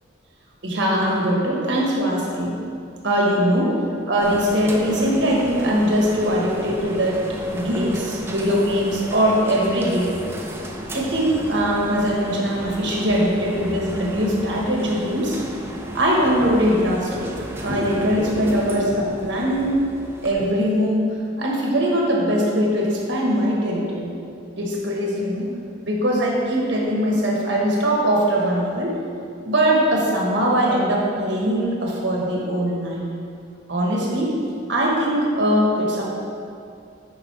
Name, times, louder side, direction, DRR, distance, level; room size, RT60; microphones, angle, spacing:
voice 1, 0.6-2.5 3.0-3.7 4.1-7.2 7.5-10.1 10.9-15.4 15.9-17.3 17.6-19.8 20.2-21.0 21.4-24.1 24.6-25.5 25.8-28.9 29.4-33.1 33.7-34.3 34.7-36.0, equal, 65° right, -2 dB, 1.5 m, -21 dB
sound 1, 4.2-20.3, right 1 dB, 15° right, 0.6 m, -34 dB
9.5 x 5.3 x 3.4 m, 2.4 s
head